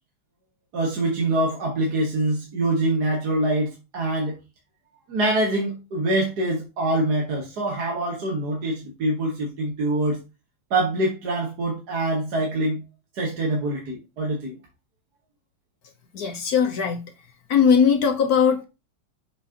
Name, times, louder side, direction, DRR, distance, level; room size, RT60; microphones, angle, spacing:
voice 1, 0.7-4.4 5.1-10.2 10.7-12.8 13.1-14.6, right 1 dB, 50° right, 1.9 m, -24 dB
voice 2, 16.1-17.0 17.5-18.6, left 7 dB, 55° left, 1.2 m, -19 dB
6.8 x 5.8 x 2.9 m
omnidirectional pair, 2.3 m